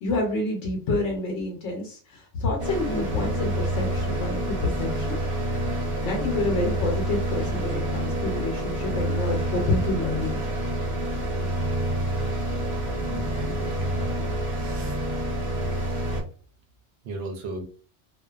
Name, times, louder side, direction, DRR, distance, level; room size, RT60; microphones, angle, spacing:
voice 1, 0.0-5.2 6.0-10.4, left 2 dB, 80° left, 0 dB, 0.9 m, -28 dB
sound 1, 2.6-16.2, right 1 dB, 35° right, 0.6 m, -28 dB
voice 2, 13.0-14.1 14.4-15.0 16.1-16.2 17.0-17.6, right 1 dB, 65° right, 3 dB, 0.8 m, -36 dB
2.4 x 2.2 x 2.3 m, 0.40 s
omnidirectional pair, 1.2 m